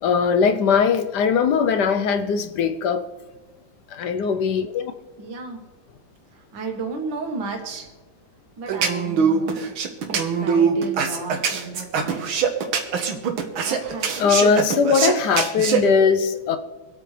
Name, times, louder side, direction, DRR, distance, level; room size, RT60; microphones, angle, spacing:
voice 1, 0.0-3.0 3.9-4.9 14.2-16.6, left 6 dB, 65° left, 9 dB, 1.2 m, -20 dB
voice 2, 5.2-5.6 6.3-7.9 8.6-9.7 10.1-12.4 13.6-14.3, right 4 dB, 70° right, 2 dB, 2.3 m, -33 dB
sound 1, 8.7-15.8, right 6 dB, 90° right, 2.0 m, -22 dB
24.5 x 8.8 x 3.3 m, 1.3 s
omnidirectional pair, 2.1 m